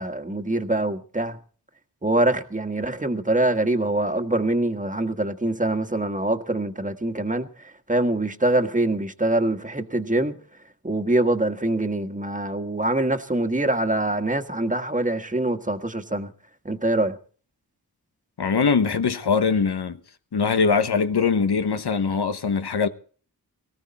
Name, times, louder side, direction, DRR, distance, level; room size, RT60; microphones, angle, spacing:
voice 1, 0.0-1.4 2.0-10.4 10.8-16.3 16.6-17.2, right 2 dB, 20° right, 1.6 m, -24 dB
voice 2, 18.4-20.0 20.3-22.9, left 5 dB, 85° left, 1.1 m, -22 dB
19.0 x 15.5 x 4.2 m
wide cardioid pair, 60°, 38 cm